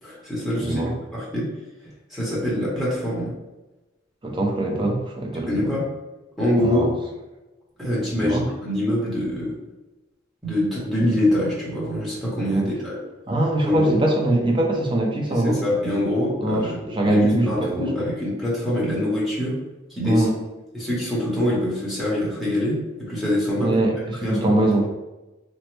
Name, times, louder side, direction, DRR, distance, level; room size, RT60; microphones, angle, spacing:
voice 1, 0.0-0.8 1.1-1.5 2.1-3.3 5.5-5.9 6.4-6.9 7.8-9.6 10.4-13.0 13.6-14.0 15.3-16.8 17.0-19.6 20.0-20.3 20.7-23.7 24.2-24.5, left 1 dB, ahead, -9 dB, 0.8 m, -24 dB
voice 2, 0.5-0.9 4.2-5.7 6.6-6.9 8.1-8.4 12.5-12.7 13.3-15.6 16.4-18.1 20.0-20.3 23.6-24.9, right 1 dB, 25° right, 0 dB, 0.4 m, -22 dB
3.1 x 2.1 x 3.0 m, 1.1 s
head